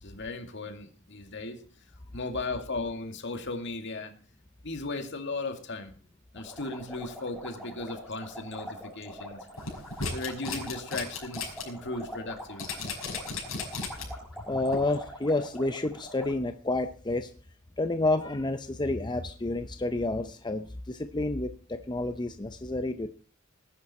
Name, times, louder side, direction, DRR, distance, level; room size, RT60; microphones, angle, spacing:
voice 1, 0.0-1.6 2.1-4.1 4.6-5.9 6.3-9.5 10.1-12.9, left 3 dB, 60° left, 6 dB, 2.2 m, -36 dB
sound 1, 6.3-16.3, equal, ahead, 7.0 m, -44 dB
sound 2, 9.6-11.6 12.0-12.1 12.6-14.2 14.7-14.8, left 4 dB, 75° left, 5.7 m, -35 dB
voice 2, 14.5-17.3 17.8-23.1, left 2 dB, 20° left, 8 dB, 0.7 m, -29 dB
19.5 x 11.0 x 4.3 m, 0.40 s
head